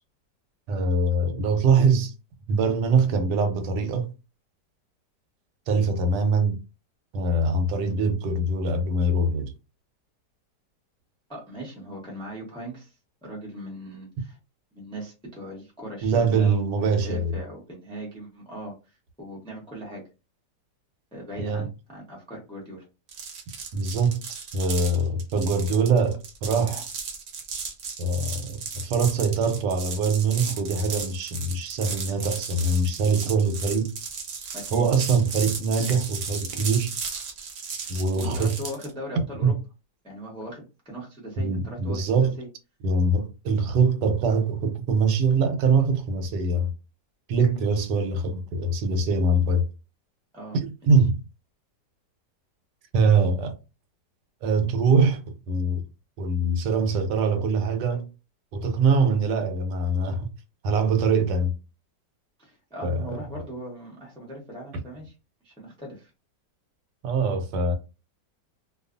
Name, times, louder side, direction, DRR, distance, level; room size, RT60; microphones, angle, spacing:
voice 1, 0.7-2.1 2.5-4.1 5.7-6.6 7.1-9.5 16.0-17.3 21.4-21.7 23.7-24.2 24.5-26.8 28.0-33.9 34.7-36.9 37.9-38.6 39.2-39.5 41.4-42.3 42.8-46.7 47.3-49.7 50.6-51.2 52.9-53.5 54.4-55.2 55.5-55.8 56.2-58.1 58.5-60.3 60.6-61.5 62.8-63.2 67.0-67.7, right 3 dB, 85° right, 1.2 m, -23 dB
voice 2, 11.3-12.9 13.2-14.4 14.7-18.7 19.2-20.0 21.1-22.8 34.5-34.8 37.8-37.9 38.1-39.5 40.0-42.5 50.3-50.6 62.4-65.1 65.4-66.1, equal, 5° left, 0.4 m, -39 dB
sound 1, 23.1-38.9, right 5 dB, 60° right, 0.9 m, -35 dB
2.6 x 2.3 x 2.4 m
omnidirectional pair, 1.8 m